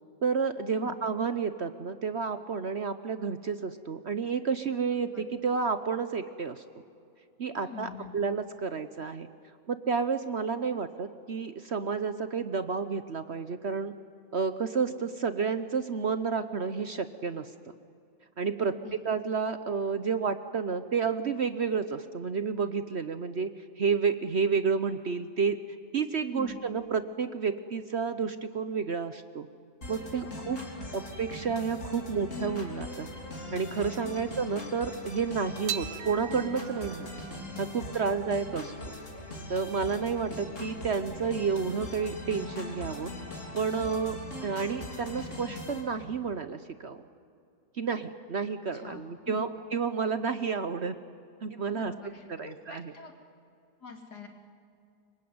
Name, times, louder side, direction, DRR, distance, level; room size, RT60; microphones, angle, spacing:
voice 1, 0.2-6.6 7.4-9.3 9.7-13.9 14.3-17.5 18.4-23.5 23.8-25.6 25.9-29.5 29.9-30.6 30.9-33.1 33.5-37.1 37.6-38.7 39.5-43.1 43.5-47.0 47.7-51.0 51.4-51.9 52.3-52.9, right 5 dB, 50° right, 11 dB, 1.0 m, -30 dB
voice 2, 7.6-8.1 18.6-19.0 26.2-26.6 30.2-30.9 34.0-34.2 37.9-38.1 48.7-49.4 51.7-53.1 53.8-54.3, left 6 dB, 75° left, 3 dB, 3.2 m, -45 dB
sound 1, 29.8-45.8, left 2 dB, 50° left, 4.0 m, -41 dB
sound 2, 35.7-42.2, right 10 dB, 85° right, 1.5 m, -43 dB
26.0 x 23.5 x 9.5 m, 2.5 s
omnidirectional pair, 1.8 m